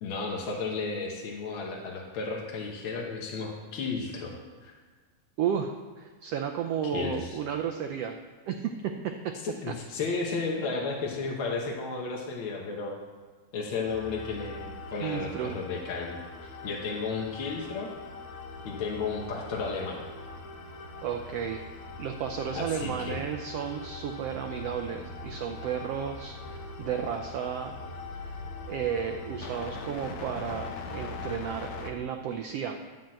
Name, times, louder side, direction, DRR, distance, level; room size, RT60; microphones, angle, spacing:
voice 1, 0.0-4.3 4.6-4.7 6.8-7.4 9.4-13.0 13.5-17.9 18.6-20.1 22.5-23.3, left 4 dB, 55° left, -1 dB, 1.4 m, -33 dB
voice 2, 5.4-8.2 8.5-9.3 15.0-15.6 21.0-21.6 22.0-27.8 28.2-28.3 28.7-32.8, right 8 dB, 90° right, 4 dB, 1.3 m, -33 dB
sound 1, 13.9-31.9, left 3 dB, 75° left, 2.2 m, -41 dB
11.5 x 5.9 x 7.7 m, 1.4 s
omnidirectional pair, 3.6 m